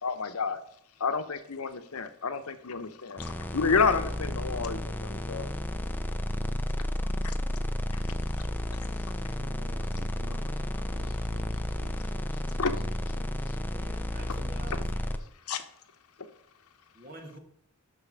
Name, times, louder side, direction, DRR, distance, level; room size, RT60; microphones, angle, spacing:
voice 1, 0.0-0.6 1.0-5.5 12.6-12.7 14.3-14.4 15.5-15.6, left 5 dB, 90° left, 9 dB, 0.9 m, -29 dB
sound 1, 3.2-15.2, left 1 dB, 10° left, 0.6 m, -32 dB
voice 2, 9.4-10.6 10.9-13.3, right 3 dB, 85° right, -3 dB, 1.8 m, -51 dB
voice 3, 13.6-15.1 16.9-17.4, right 2 dB, 40° right, 4 dB, 1.6 m, -47 dB
6.7 x 6.1 x 6.2 m, 0.71 s
head